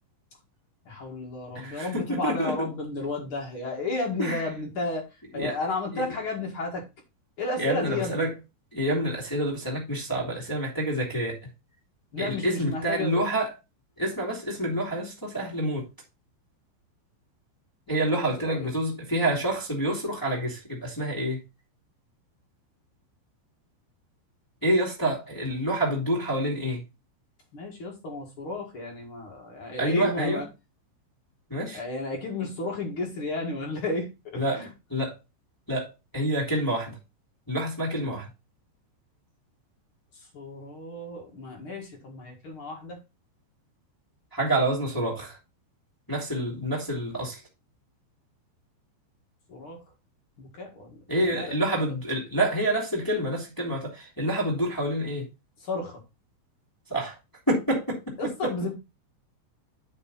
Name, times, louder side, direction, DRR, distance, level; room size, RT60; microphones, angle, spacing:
voice 1, 0.8-6.8 7.4-8.2 12.1-13.3 17.9-18.7 27.5-30.5 31.7-34.7 40.3-43.0 49.5-49.8 50.4-51.0 51.3-51.5 55.6-56.0 58.2-58.7, left 2 dB, 55° left, 1.5 m, -33 dB
voice 2, 1.5-2.7 4.2-4.4 5.3-5.5 5.9-6.0 7.6-8.3 8.7-11.4 12.2-13.5 14.0-15.9 17.9-21.4 24.6-26.8 29.8-30.4 31.5-31.8 34.4-34.6 34.9-35.1 35.7-37.0 37.5-38.3 44.3-45.4 46.1-47.4 51.1-55.3 56.9-57.1 57.5-58.1 58.4-58.5, right 1 dB, 10° left, 1.0 m, -27 dB
9.0 x 5.3 x 4.0 m
omnidirectional pair, 5.6 m